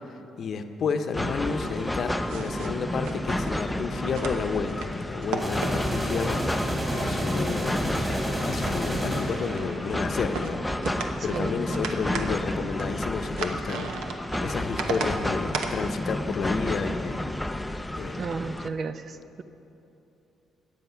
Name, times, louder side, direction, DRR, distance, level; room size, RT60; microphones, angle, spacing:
voice 1, 0.4-7.9 8.4-14.0 14.4-17.3 18.0-18.4, left 5 dB, 60° left, 8 dB, 0.7 m, -31 dB
sound 1, 1.1-18.7, left 1 dB, 5° left, 0.5 m, -31 dB
sound 2, 1.6-3.5 4.1-4.9 5.2-6.1 6.5-8.3 8.6-9.3 10.2-10.5 10.8-15.1 15.5-15.7 17.5-17.7 18.3-18.6, right 5 dB, 90° right, 0.9 m, -36 dB
sound 3, 5.4-10.2, equal, 10° right, 3.0 m, -30 dB
voice 2, 18.2-19.4, right 4 dB, 55° right, 11 dB, 0.5 m, -33 dB
14.0 x 9.2 x 5.7 m, 2.9 s
cardioid pair, 90°, 0 cm